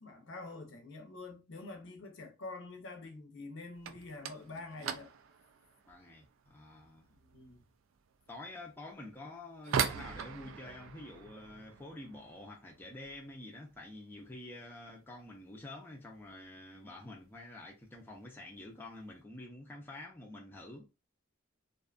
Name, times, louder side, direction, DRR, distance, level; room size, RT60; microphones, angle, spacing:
voice 1, 0.0-5.1 7.1-7.7, left 3 dB, 60° left, 0.6 m, -47 dB
sound 1, 3.7-14.5 14.8-15.4 15.6-15.9 16.3-16.4 17.1-17.2 18.1-18.3 18.6-19.1, right 7 dB, 70° right, 0.3 m, -41 dB
voice 2, 5.9-7.1 8.3-20.9, left 1 dB, 10° left, 0.5 m, -48 dB
2.6 x 2.2 x 2.4 m
head